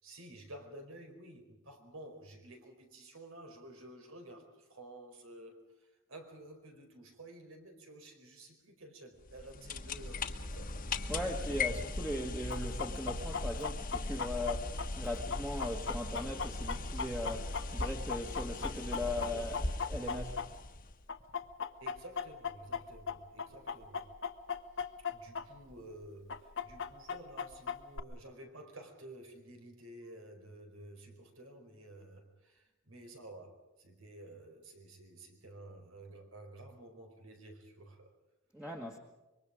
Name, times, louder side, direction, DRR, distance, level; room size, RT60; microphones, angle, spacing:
voice 1, 0.0-10.7 18.9-19.6 21.8-24.1 25.0-38.1, right 1 dB, 85° right, 5 dB, 4.8 m, -52 dB
sound 1, 9.2-21.0, left 2 dB, 45° left, 1.3 m, -39 dB
voice 2, 11.1-19.6 19.9-20.4 38.5-39.0, left 1 dB, 5° right, 1 dB, 1.5 m, -39 dB
Chicken rooster, 12.5-20.8 21.1-25.4 25.7-25.8 26.3-28.0, left 6 dB, 60° left, 1.2 m, -37 dB
26.0 x 23.5 x 5.1 m, 1.1 s
head